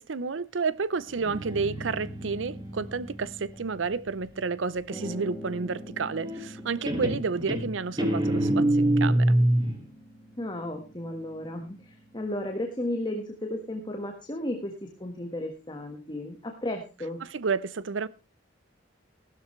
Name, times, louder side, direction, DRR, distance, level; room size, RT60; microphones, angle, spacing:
voice 1, 0.0-9.4 17.2-18.1, right 4 dB, 80° right, 0.6 m, -31 dB
Guitar, 1.1-4.7 6.2-6.6 6.9-9.8, right 1 dB, 20° right, 1.9 m, -26 dB
sound 1, 4.9-12.6, equal, ahead, 2.4 m, -46 dB
voice 2, 10.4-17.3, left 1 dB, 25° left, 1.5 m, -34 dB
15.5 x 12.5 x 3.2 m
head